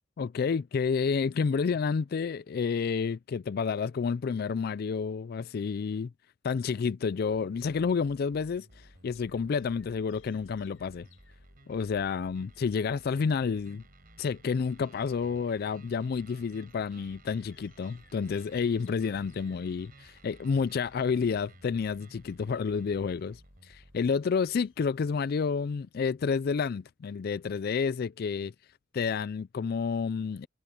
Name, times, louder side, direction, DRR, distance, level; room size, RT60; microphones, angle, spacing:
voice 1, 0.2-6.1 6.4-11.1 11.7-13.8 14.2-28.5 28.9-30.5, left 5 dB, 50° left, 0.3 m, -30 dB
sound 1, 7.3-24.0, right 2 dB, 50° right, 5.3 m, -56 dB
sound 2, 9.0-25.5, left 3 dB, 90° left, 7.4 m, -66 dB
head